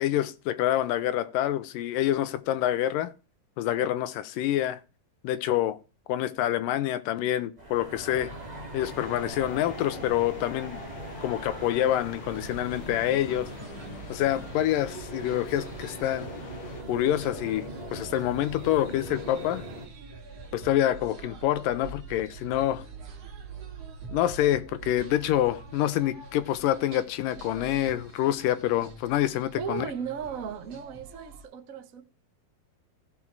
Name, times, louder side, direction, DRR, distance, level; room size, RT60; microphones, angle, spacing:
voice 1, 0.0-3.1 3.6-4.8 5.2-5.8 6.1-8.3 8.7-10.8 11.2-13.5 14.1-16.3 16.9-19.6 20.5-22.8 24.1-29.9, left 12 dB, 80° left, 2.3 m, -27 dB
sound 1, 7.6-19.9, right 1 dB, 15° right, 1.7 m, -40 dB
sound 2, 8.8-16.8, left 5 dB, 55° left, 1.6 m, -48 dB
sound 3, 12.2-31.4, right 4 dB, 50° right, 2.7 m, -45 dB
voice 2, 29.6-32.0, right 7 dB, 75° right, 0.7 m, -36 dB
15.0 x 6.2 x 4.5 m
omnidirectional pair, 4.0 m